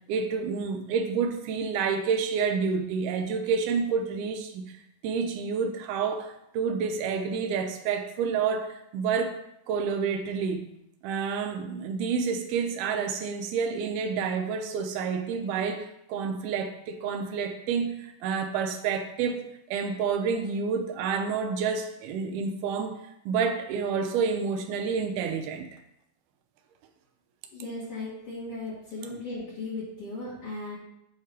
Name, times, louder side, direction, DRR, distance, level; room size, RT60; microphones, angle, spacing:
voice 1, 0.1-4.7 5.0-9.4 9.7-10.6 11.0-23.0 23.3-25.7, right 6 dB, 80° right, 4 dB, 2.0 m, -29 dB
voice 2, 27.5-30.8, left 2 dB, 50° left, -9 dB, 2.0 m, -37 dB
7.9 x 2.8 x 4.5 m, 0.80 s
omnidirectional pair, 4.1 m